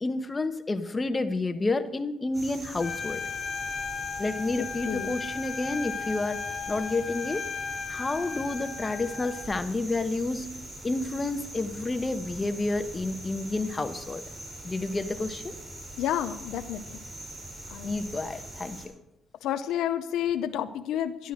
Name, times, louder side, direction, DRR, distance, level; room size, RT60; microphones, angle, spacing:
voice 1, 0.0-3.2 4.2-7.5 7.9-10.5 10.8-14.2 14.6-15.6 17.8-18.9, left 2 dB, 25° left, 9 dB, 1.1 m, -30 dB
sound 1, 2.3-18.9, right 1 dB, 15° right, 6.5 m, -42 dB
Trumpet, 2.8-9.5, left 5 dB, 45° left, 1.1 m, -36 dB
voice 2, 4.6-5.1 16.0-17.0 17.7-18.1 19.4-21.3, left 10 dB, 85° left, 8 dB, 0.7 m, -30 dB
12.0 x 12.0 x 6.3 m, 0.87 s
cardioid pair, 95°, 0 cm